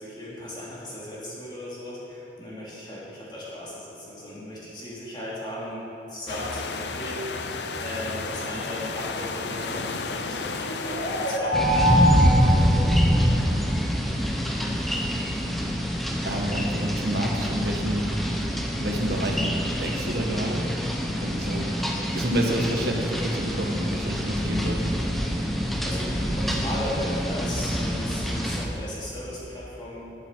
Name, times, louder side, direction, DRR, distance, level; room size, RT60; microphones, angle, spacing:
voice 1, 0.0-5.8 6.1-7.5 7.8-12.1 25.8-30.0, left 1 dB, 25° left, -7 dB, 2.9 m, -36 dB
sound 1, 6.3-11.4, left 4 dB, 80° left, 0.7 m, -32 dB
sound 2, 10.6-13.5, equal, 50° left, 2.2 m, -25 dB
sound 3, 11.5-28.7, equal, ahead, 0.8 m, -25 dB
voice 2, 14.8-15.7 16.2-18.1 18.7-20.7 21.2-21.7 22.1-24.8, right 1 dB, 70° right, 1 dB, 1.4 m, -29 dB
19.0 x 7.2 x 4.6 m, 2.9 s
head